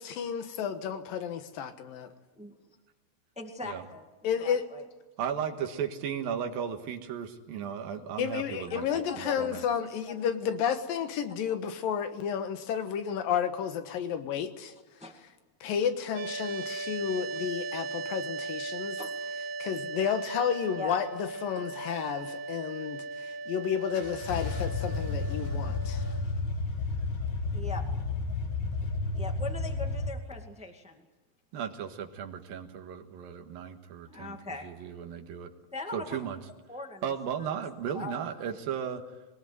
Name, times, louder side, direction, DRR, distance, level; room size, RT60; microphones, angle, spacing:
voice 1, 0.0-2.1 4.2-4.6 8.2-14.7 15.6-19.0 19.6-26.0, left 8 dB, 80° left, 8 dB, 3.1 m, -31 dB
voice 2, 3.3-4.0 4.4-4.8 8.7-9.5 10.0-10.1 15.0-15.1 16.6-16.7 19.0-19.1 20.8-21.0 21.5-21.6 27.5-27.8 29.1-31.0 34.1-34.7 35.7-36.2 36.7-37.1 37.4-37.5 37.9-38.1, left 3 dB, 5° right, 4 dB, 1.0 m, -40 dB
voice 3, 5.2-8.9 9.2-9.6 31.5-34.4 34.6-35.5 35.9-36.4 37.0-39.0, right 8 dB, 85° right, 5 dB, 3.3 m, -35 dB
sound 1, 16.2-26.2, right 3 dB, 65° right, 2.5 m, -38 dB
sound 2, 23.9-30.1, left 3 dB, 55° left, 1.3 m, -32 dB
22.0 x 19.5 x 9.4 m, 1.2 s
omnidirectional pair, 4.0 m